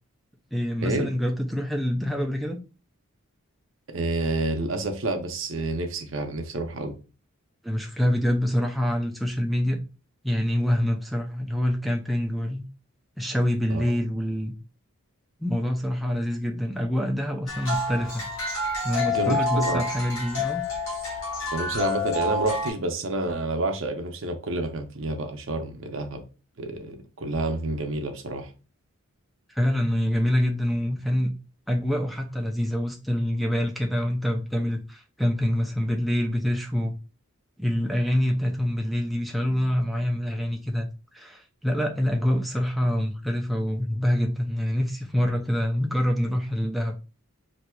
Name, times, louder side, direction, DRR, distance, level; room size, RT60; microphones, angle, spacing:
voice 1, 0.5-2.6 7.6-9.8 10.2-12.6 13.2-14.5 15.4-18.2 18.8-20.6 29.5-31.3 31.7-36.9 37.6-40.9 41.1-47.0, equal, ahead, 0.4 m, -26 dB
voice 2, 3.9-6.9 13.7-14.0 19.1-19.4 19.6-19.8 21.5-26.2 26.6-28.5, right 2 dB, 60° right, 0.6 m, -29 dB
sound 1, 17.5-22.7, left 2 dB, 60° left, 1.2 m, -28 dB
4.4 x 2.6 x 2.3 m
head